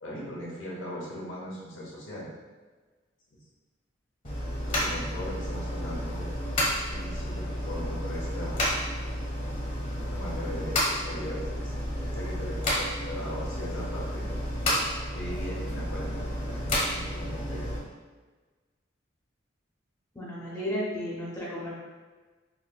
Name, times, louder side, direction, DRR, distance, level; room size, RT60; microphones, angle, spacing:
voice 1, 0.0-2.3 3.3-3.4 4.6-6.3 6.7-8.9 10.1-11.7 12.0-14.3 15.1-17.7, equal, 75° left, -4 dB, 1.2 m, -39 dB
sound 1, 4.2-17.8, equal, 45° left, 1.4 m, -31 dB
voice 2, 20.1-21.8, equal, 15° left, -7 dB, 0.8 m, -33 dB
5.6 x 2.8 x 2.2 m, 1.3 s
head